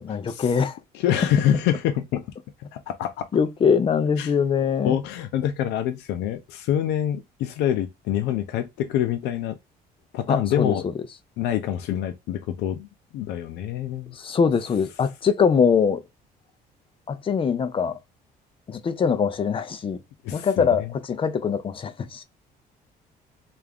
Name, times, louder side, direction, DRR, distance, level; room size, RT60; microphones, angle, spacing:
voice 1, 0.0-0.8 3.3-5.0 10.3-10.9 14.1-16.0 17.1-18.0 18.7-20.0 20.3-22.2, left 6 dB, 30° left, 0.5 m, -23 dB
voice 2, 0.9-2.2 2.7-3.3 4.2-4.3 4.8-9.6 10.1-10.8 11.4-12.9 13.1-14.2 20.2-20.7, left 10 dB, 85° left, 0.5 m, -26 dB
3.4 x 2.5 x 3.4 m
cardioid pair, 110°, 17 cm